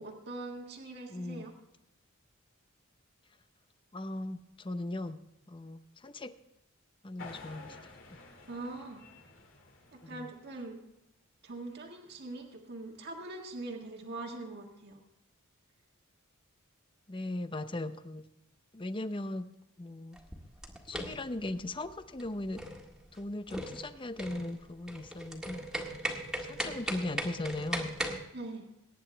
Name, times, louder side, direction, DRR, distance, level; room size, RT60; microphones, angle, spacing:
voice 1, 0.0-1.5 8.5-9.0 9.9-10.8 11.4-15.0 28.3-28.7, right 2 dB, 50° right, 1 dB, 1.7 m, -42 dB
voice 2, 1.1-1.5 3.9-5.2 5.5-6.3 7.0-7.8 8.1-8.2 10.0-10.3 17.1-18.2 18.7-19.5 19.8-20.2 20.9-22.6 23.1-25.6 26.4-27.9, left 2 dB, 25° left, 11 dB, 0.7 m, -38 dB
sound 1, 7.2-10.7, left 3 dB, 65° left, 2.5 m, -51 dB
sound 2, 20.1-28.2, right 1 dB, 5° right, 1.7 m, -39 dB
22.5 x 9.9 x 3.4 m, 0.89 s
head